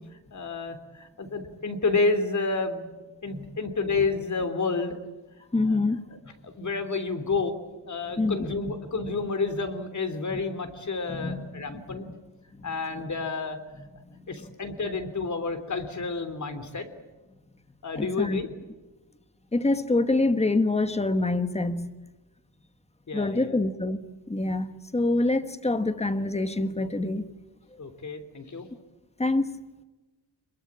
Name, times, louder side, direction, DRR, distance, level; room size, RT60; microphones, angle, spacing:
voice 1, 0.3-2.9 3.2-5.0 5.7-5.8 6.4-7.5 7.9-12.1 12.6-13.6 14.3-16.9 17.8-18.5 23.1-23.6 27.8-28.7, left 3 dB, 40° left, 3.2 m, -30 dB
voice 2, 5.5-6.0 8.2-8.4 10.3-10.4 11.1-12.0 12.6-12.7 17.9-18.4 19.5-21.9 23.1-24.0 24.3-27.2 29.2-29.5, left 2 dB, 15° left, 1.5 m, -26 dB
27.0 x 22.0 x 8.7 m
wide cardioid pair, 165°, 43 cm